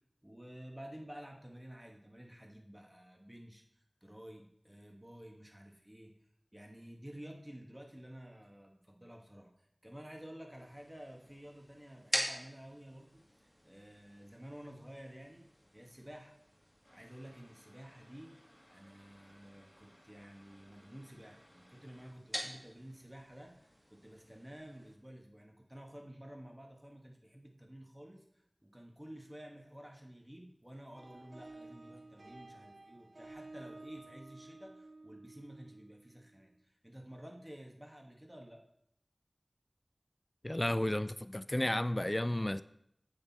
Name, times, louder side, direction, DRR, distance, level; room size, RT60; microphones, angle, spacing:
voice 1, 0.2-3.6 4.0-6.1 6.5-9.5 9.8-13.2 13.6-15.5 15.7-16.3 16.9-18.3 18.7-38.6, equal, 15° right, 1.6 m, -52 dB
sound 1, 10.6-24.9, equal, ahead, 2.1 m, -46 dB
sound 2, 30.9-36.4, right 2 dB, 80° right, 0.6 m, -53 dB
voice 2, 40.4-42.6, left 1 dB, 30° left, 0.3 m, -32 dB
7.9 x 6.7 x 4.3 m
wide cardioid pair, 40°, 0 cm